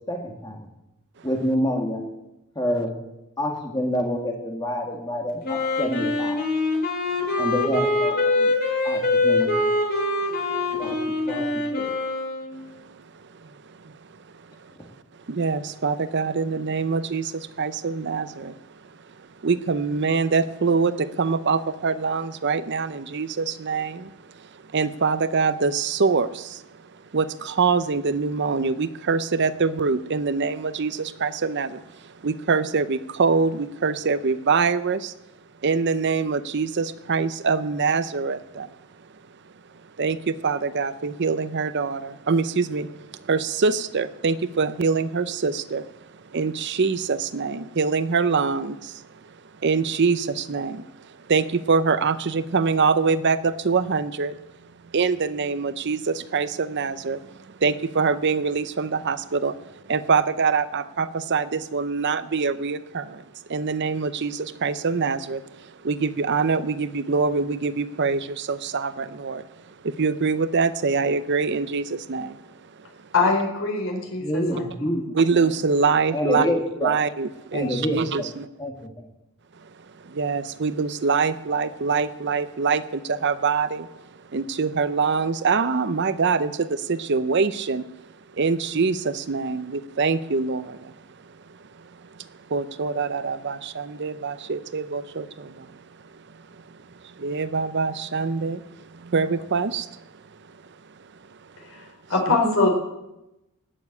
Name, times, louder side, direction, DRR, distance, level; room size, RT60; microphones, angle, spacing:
voice 1, 0.1-0.7 1.2-2.0 2.6-3.0 3.4-6.4 7.4-8.5 8.8-9.5 10.7-11.0 11.2-11.9 74.2-75.0 75.3-75.5 76.1-77.0 77.5-78.3 78.6-79.1, equal, 20° left, 2.0 m, -27 dB
Wind instrument woodwind instrument, 5.4-12.5, left 2 dB, 45° left, 4.3 m, -24 dB
voice 2, 13.4-13.9 14.6-14.7 15.3-18.6 19.4-24.1 24.4-26.6 27.1-35.1 35.6-38.7 40.0-45.9 46.3-49.2 49.6-54.4 54.9-63.2 63.5-72.4 72.8-72.9 75.1-76.5 76.8-78.5 80.0-83.9 84.3-87.9 88.3-90.9 92.2-95.8 96.5-96.6 97.0-100.0 102.4-102.7, right 4 dB, 55° right, 0.6 m, -24 dB
voice 3, 73.1-74.9 102.1-102.7, left 3 dB, 65° left, 4.1 m, -23 dB
18.5 x 7.1 x 8.5 m
head